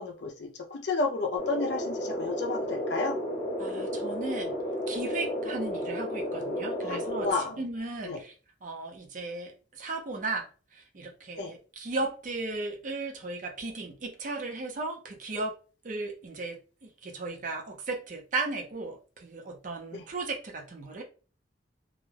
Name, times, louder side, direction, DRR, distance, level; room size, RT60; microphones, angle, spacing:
voice 1, 0.0-3.2 6.8-7.6 8.0-8.2 11.4-11.5 19.9-20.0, left 3 dB, 70° left, 0.4 m, -32 dB
sound 1, 1.4-7.3, equal, 45° left, 0.8 m, -32 dB
voice 2, 3.6-4.6 4.9-8.3 8.6-10.5 10.7-15.5 15.8-21.0, right 3 dB, 45° right, 0.5 m, -36 dB
2.4 x 2.2 x 3.2 m
head